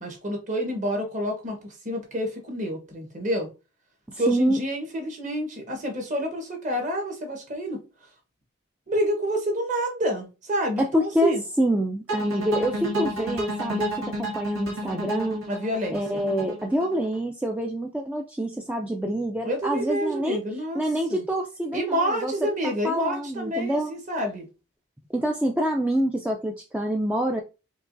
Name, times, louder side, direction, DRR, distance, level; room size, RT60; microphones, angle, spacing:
voice 1, 0.0-3.5 4.2-8.1 8.9-11.4 12.3-12.6 15.5-16.3 19.4-21.2 21.7-24.5, equal, 35° right, 1.2 m, -28 dB
voice 2, 4.1-4.6 10.8-15.5 15.9-20.4 20.7-22.3 22.8-23.9 25.1-27.4, equal, 5° right, 0.3 m, -26 dB
sound 1, 12.1-17.2, right 1 dB, 75° right, 1.7 m, -30 dB
4.6 x 3.0 x 2.6 m
head